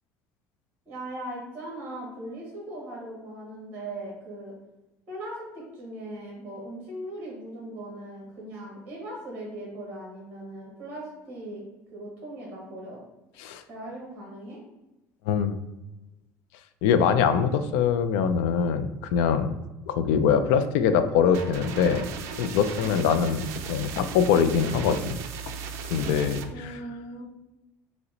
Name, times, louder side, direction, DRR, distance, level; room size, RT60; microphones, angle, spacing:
voice 1, 0.8-4.5 5.1-11.6 11.9-13.0 13.7-14.6 22.8-23.2 26.5-27.2, right 1 dB, 25° right, -3 dB, 1.3 m, -39 dB
voice 2, 15.3-15.6 16.8-19.5 19.9-22.1 22.4-25.2 25.9-26.7, left 7 dB, 85° left, 10 dB, 0.4 m, -23 dB
sound 1, 21.3-26.5, right 7 dB, 50° right, 0.4 m, -37 dB
5.6 x 2.1 x 3.8 m, 1.0 s
cardioid pair, 165°, 6 cm